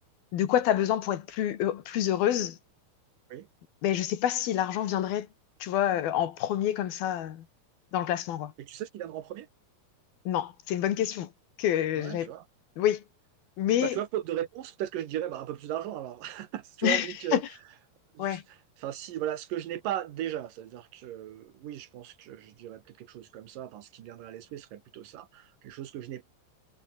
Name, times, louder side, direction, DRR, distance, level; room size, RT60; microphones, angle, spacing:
voice 1, 0.3-2.6 3.8-5.3 5.6-7.5 7.9-8.5 10.3-11.3 11.6-12.3 12.8-13.0 13.6-14.0 16.8-17.4 18.2-18.4, left 11 dB, 75° left, 3.5 m, -27 dB
voice 2, 8.6-9.5 12.0-12.5 13.8-17.4 18.1-18.4 18.8-26.3, right 12 dB, 65° right, 3.0 m, -36 dB
omnidirectional pair, 4.5 m